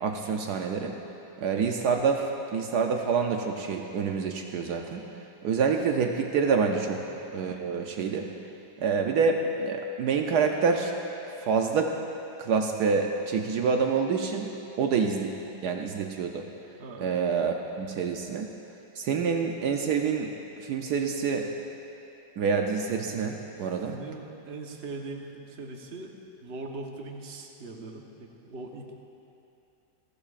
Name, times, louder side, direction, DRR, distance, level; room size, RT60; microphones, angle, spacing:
voice 1, 0.0-1.0 1.4-5.0 5.4-7.0 7.3-8.3 8.8-10.9 11.3-11.9 12.4-14.5 14.8-15.3 15.6-16.5 17.0-18.5 18.9-20.3 20.6-21.5 22.4-24.0, right 5 dB, 75° right, 3 dB, 1.3 m, -27 dB
voice 2, 23.8-26.1 26.4-29.0, right 3 dB, 40° right, 1 dB, 1.3 m, -40 dB
29.0 x 12.0 x 2.5 m, 2.8 s
omnidirectional pair, 1.8 m